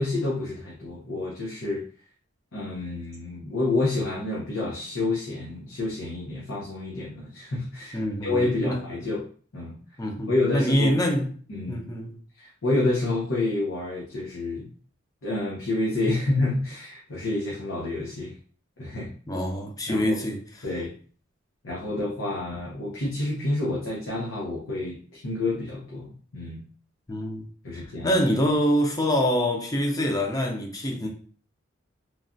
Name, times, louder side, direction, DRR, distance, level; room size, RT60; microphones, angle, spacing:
voice 1, 0.0-1.8 2.5-9.2 9.5-9.8 10.3-11.1 11.5-11.8 12.4-14.7 15.2-18.3 18.8-19.1 19.9-20.2 20.6-20.9 21.6-26.6 27.6-28.2, left 2 dB, 90° left, 0.8 m, -28 dB
voice 2, 7.9-8.8 10.0-11.3 11.7-12.2 19.3-20.7 27.1-27.5 27.7-31.1, equal, 20° left, 0.5 m, -25 dB
3.1 x 2.3 x 2.5 m
head